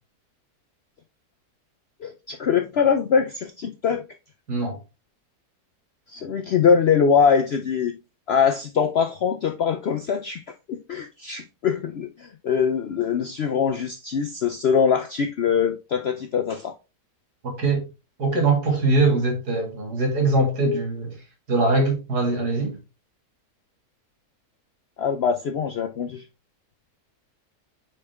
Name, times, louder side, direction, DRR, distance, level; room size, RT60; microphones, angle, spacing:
voice 1, 2.0-4.0 6.1-7.9 8.3-10.4 10.7-16.7 25.0-26.2, left 6 dB, 65° left, 0.6 m, -23 dB
voice 2, 17.4-17.8 18.2-21.2 21.5-22.7, right 2 dB, 75° right, 2.8 m, -22 dB
6.7 x 4.4 x 3.4 m
omnidirectional pair, 1.7 m